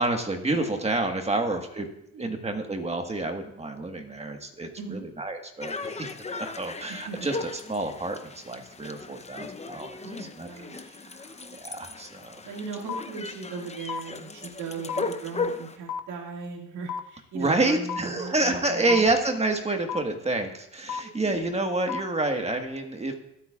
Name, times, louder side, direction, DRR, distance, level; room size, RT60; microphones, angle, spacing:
voice 1, 0.0-1.9 2.2-10.9 11.6-12.4 17.3-23.1, right 2 dB, 20° right, 4 dB, 1.6 m, -28 dB
sound 1, 5.6-15.8, left 4 dB, 20° left, 0.8 m, -37 dB
voice 2, 10.0-11.4 12.4-19.0 21.0-21.6, right 5 dB, 85° right, -1 dB, 2.3 m, -38 dB
sound 2, 12.9-13.0 13.9-14.0 14.9-15.0 15.9-16.0 16.9-17.0 17.9-18.0 18.9-19.0 19.9-20.0 20.9-21.0 21.9-22.0, left 7 dB, 75° left, 0.7 m, -31 dB
22.0 x 8.3 x 2.5 m, 0.78 s
cardioid pair, 90°, 30 cm